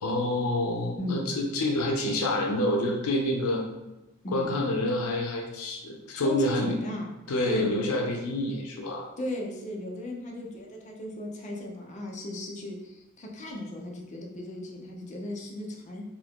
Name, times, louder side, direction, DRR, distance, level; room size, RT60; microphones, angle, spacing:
voice 1, 0.0-3.6 4.3-6.8 7.3-9.1, left 1 dB, 85° left, 0 dB, 0.5 m, -28 dB
voice 2, 1.0-1.3 4.2-4.5 6.2-7.1 7.4-8.1 9.2-16.0, left 1 dB, 35° left, 0 dB, 0.5 m, -36 dB
2.7 x 2.5 x 3.4 m, 0.99 s
head